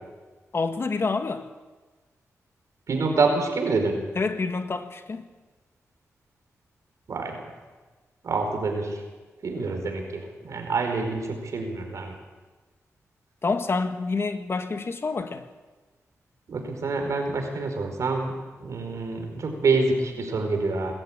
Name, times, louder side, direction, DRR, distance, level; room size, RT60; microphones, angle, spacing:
voice 1, 0.5-1.4 4.1-5.2 13.4-15.4, left 4 dB, 50° left, 1.6 m, -27 dB
voice 2, 2.9-4.0 7.1-7.4 8.2-9.0 9.4-12.1 16.5-20.9, right 3 dB, 70° right, 4.7 m, -26 dB
21.5 x 13.5 x 8.9 m
cardioid pair, 70°, 5 cm